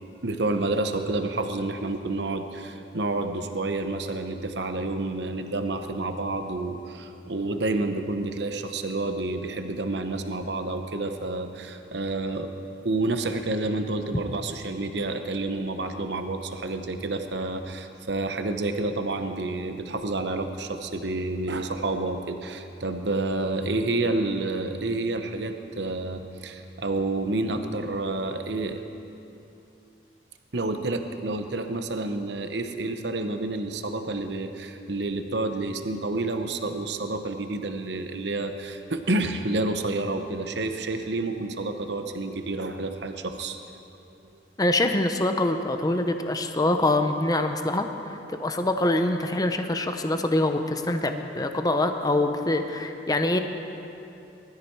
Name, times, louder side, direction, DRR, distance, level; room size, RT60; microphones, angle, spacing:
voice 1, 0.2-12.5 12.8-28.8 30.5-43.6, right 2 dB, 65° right, 6 dB, 0.9 m, -29 dB
voice 2, 44.6-53.4, left 2 dB, 20° left, 6 dB, 0.8 m, -25 dB
21.0 x 13.5 x 4.7 m, 2.8 s
head